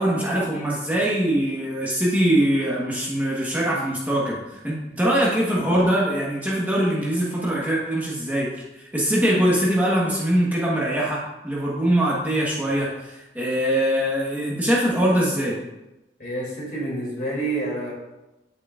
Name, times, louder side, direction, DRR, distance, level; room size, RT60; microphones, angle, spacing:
voice 1, 0.0-8.5 8.7-15.6, right 1 dB, 10° right, -5 dB, 1.3 m, -22 dB
voice 2, 16.2-17.9, right 2 dB, 45° left, -4 dB, 2.9 m, -28 dB
9.6 x 8.4 x 2.5 m, 0.99 s
head